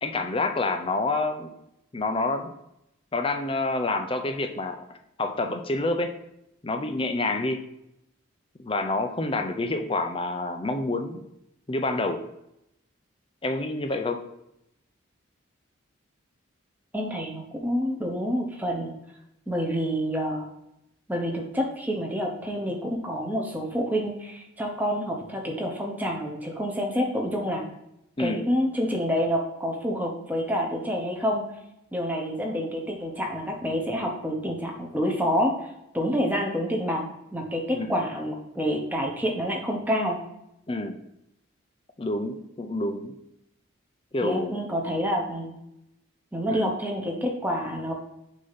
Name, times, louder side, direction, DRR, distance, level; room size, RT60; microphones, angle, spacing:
voice 1, 0.0-1.5 1.9-2.5 3.1-6.1 6.6-7.6 8.6-11.2 11.7-12.2 13.4-14.2 28.2-28.4 37.7-38.0 40.7-40.9 42.0-43.1 44.1-44.6 46.5-46.7, left 2 dB, 25° left, 6 dB, 0.5 m, -28 dB
voice 2, 16.9-18.9 19.5-20.5 21.1-27.6 28.2-31.4 31.9-35.7 35.9-37.0 37.3-40.2 44.2-45.6 46.3-48.0, equal, 10° right, 0 dB, 0.9 m, -28 dB
6.3 x 2.8 x 5.7 m, 0.83 s
head